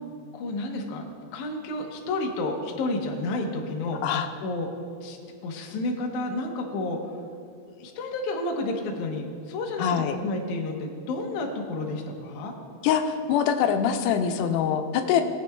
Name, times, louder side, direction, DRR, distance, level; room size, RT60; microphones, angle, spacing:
voice 1, 0.3-1.0 1.3-4.0 4.4-4.7 5.0-7.0 7.8-12.5, left 2 dB, 75° left, 1 dB, 1.8 m, -31 dB
voice 2, 9.8-10.2 12.8-15.2, left 8 dB, 90° left, 6 dB, 2.8 m, -24 dB
19.5 x 8.4 x 2.3 m, 2.4 s
omnidirectional pair, 4.8 m